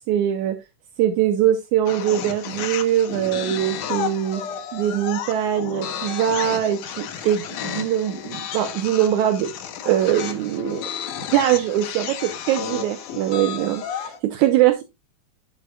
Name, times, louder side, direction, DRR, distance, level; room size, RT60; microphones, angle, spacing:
voice 1, 0.1-0.6 1.0-4.4 4.7-9.5 9.9-10.8 11.3-14.8, right 11 dB, 75° right, 7 dB, 2.1 m, -22 dB
sound 1, 1.9-14.2, left 8 dB, 75° left, 2.5 m, -32 dB
11.0 x 8.3 x 2.3 m, 0.24 s
omnidirectional pair, 3.6 m